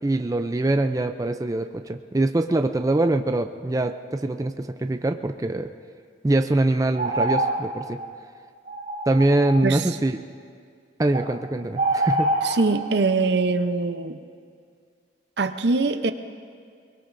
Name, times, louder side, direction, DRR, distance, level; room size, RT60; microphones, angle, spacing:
voice 1, 0.0-5.7 6.2-8.0 9.1-10.2 11.0-12.3, right 2 dB, 20° right, 7 dB, 0.4 m, -23 dB
sound 1, 6.9-7.6 8.0-8.1 8.7-9.6 11.1-11.3 11.7-12.6, right 2 dB, 45° right, 2.8 m, -25 dB
voice 2, 12.4-14.2 15.4-16.1, right 3 dB, 60° right, 9 dB, 0.7 m, -23 dB
23.0 x 20.5 x 2.6 m, 2.2 s
head